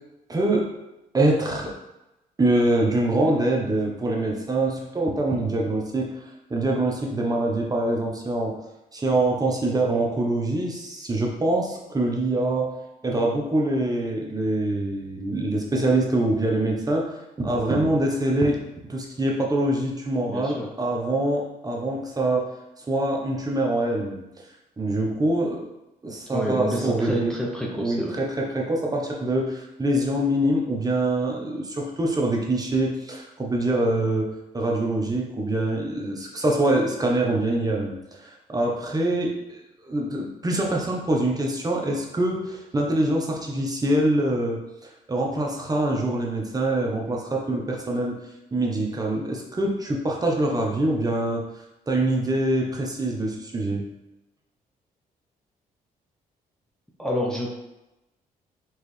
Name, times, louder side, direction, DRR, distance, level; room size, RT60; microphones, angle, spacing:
voice 1, 0.3-0.7 1.1-1.7 2.4-6.2 6.5-8.6 8.9-12.7 13.0-18.6 18.9-22.5 22.8-24.5 24.8-25.6 26.0-27.3 27.8-48.1 48.5-51.4 51.9-53.8, right 1 dB, 25° right, -1 dB, 1.0 m, -24 dB
voice 2, 20.3-20.7 26.3-28.2 57.0-57.6, equal, 5° left, -3 dB, 0.8 m, -28 dB
4.6 x 3.2 x 3.3 m, 0.95 s
cardioid pair, 80°, 16 cm